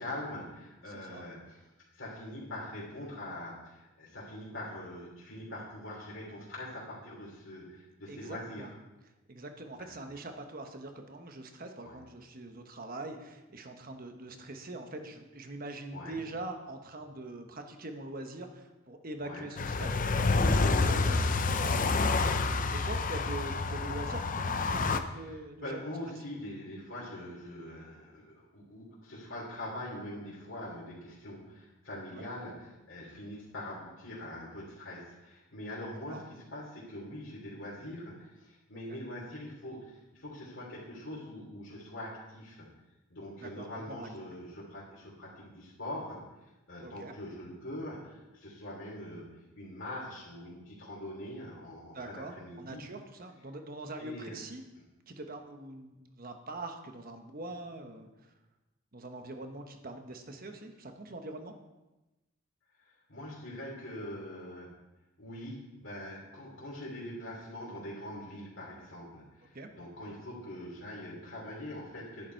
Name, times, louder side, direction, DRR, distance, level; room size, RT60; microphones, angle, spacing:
voice 1, 0.0-1.6 1.9-8.7 9.8-10.1 11.8-12.0 15.9-16.2 19.2-19.4 25.1-42.7 43.1-49.2 49.5-52.8 54.0-54.4 62.8-64.7 65.2-72.3, left 1 dB, 60° left, -6 dB, 3.0 m, -43 dB
voice 2, 0.9-1.2 8.1-8.7 9.3-25.8 32.1-32.3 36.1-36.2 38.9-39.0 43.4-44.3 46.8-47.1 51.9-54.6 55.1-58.3 58.9-61.5 69.5-69.7, right 2 dB, 40° right, 5 dB, 1.1 m, -43 dB
sound 1, 19.6-25.0, left 3 dB, 40° left, 0.6 m, -28 dB
11.0 x 10.5 x 4.5 m, 1.0 s
head